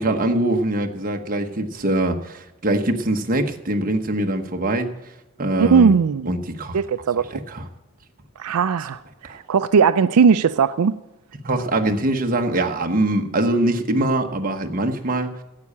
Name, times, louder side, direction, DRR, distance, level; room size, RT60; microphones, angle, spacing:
voice 1, 0.0-4.9 5.4-5.9 6.3-6.8 7.3-7.7 9.2-9.4 11.4-15.3, right 1 dB, 40° right, 4 dB, 1.1 m, -23 dB
voice 2, 5.6-6.3 6.7-7.3 8.4-10.9, right 6 dB, 85° right, 12 dB, 0.4 m, -18 dB
11.5 x 8.5 x 8.5 m, 0.95 s
head